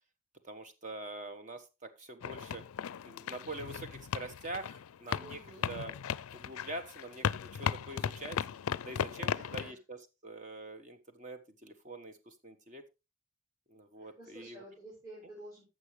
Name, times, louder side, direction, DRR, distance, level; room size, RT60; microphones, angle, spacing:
voice 1, 0.4-2.6 3.0-5.4 5.7-5.9 6.3-8.4 8.8-12.8 13.7-14.7, right 2 dB, 35° right, 8 dB, 1.2 m, -45 dB
sound 1, 2.2-9.7, left 8 dB, 80° left, 0.4 m, -37 dB
voice 2, 5.2-5.7 9.3-9.8 14.0-15.6, right 1 dB, 15° right, -5 dB, 4.3 m, -51 dB
14.5 x 6.2 x 3.2 m, 0.26 s
head